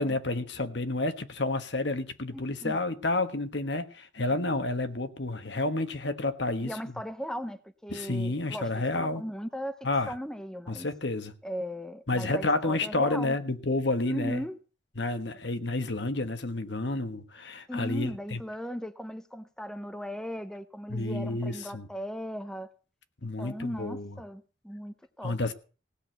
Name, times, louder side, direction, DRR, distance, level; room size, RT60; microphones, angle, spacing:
voice 1, 0.0-6.8 7.9-9.3 9.8-10.1 10.7-11.3 12.1-14.4 15.0-18.4 20.9-21.9 23.2-24.2 25.2-25.5, left 2 dB, 70° left, 1.4 m, -30 dB
voice 2, 2.3-2.8 6.6-9.8 10.1-10.9 11.4-13.4 14.1-14.6 17.7-22.7 23.4-25.4, equal, 5° left, 0.7 m, -37 dB
17.0 x 6.3 x 9.0 m
head